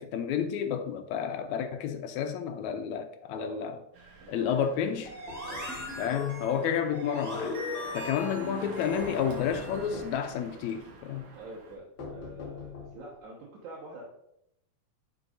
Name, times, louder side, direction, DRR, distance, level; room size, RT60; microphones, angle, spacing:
voice 1, 0.0-3.8 4.3-5.1 6.0-7.6 7.9-11.3, left 8 dB, 85° left, 1.9 m, -30 dB
voice 2, 3.3-3.8 4.2-4.7 5.4-5.7 11.4-14.0, right 2 dB, 80° right, 2.7 m, -45 dB
Engine, 3.9-11.8, right 3 dB, 60° right, 1.8 m, -48 dB
sound 1, 5.0-6.0 9.0-10.3 12.0-13.1, left 4 dB, 65° left, 1.2 m, -43 dB
sound 2, 5.0-10.0, left 2 dB, 10° right, 0.9 m, -38 dB
10.0 x 4.8 x 2.6 m
omnidirectional pair, 3.4 m